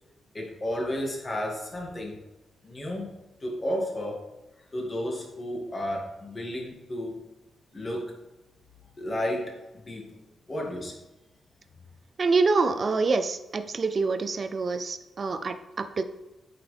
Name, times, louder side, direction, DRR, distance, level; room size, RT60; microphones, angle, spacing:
voice 1, 0.3-2.2 2.6-3.1 3.4-4.2 4.7-7.2 7.7-8.1 9.0-10.2 10.5-10.9, equal, 30° left, -1 dB, 2.1 m, -32 dB
voice 2, 12.2-16.0, right 4 dB, 45° right, 9 dB, 0.5 m, -26 dB
8.7 x 5.6 x 3.4 m, 1.1 s
cardioid pair, 95°, 0 cm